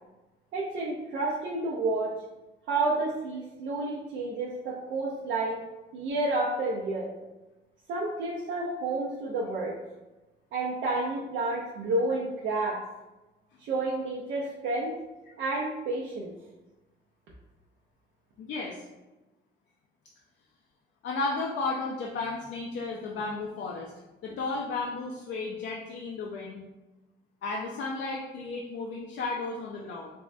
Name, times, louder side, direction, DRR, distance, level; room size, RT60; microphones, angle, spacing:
voice 1, 0.5-2.1 2.7-5.6 5.9-7.1 7.9-9.7 10.5-12.8 13.6-14.9 15.4-16.3, right 2 dB, 70° right, -4 dB, 0.5 m, -30 dB
voice 2, 18.4-18.8 21.0-23.9 24.2-26.6 27.4-30.1, left 3 dB, 65° left, -2 dB, 0.4 m, -33 dB
3.4 x 2.1 x 2.5 m, 1.1 s
cardioid pair, 90°, 20 cm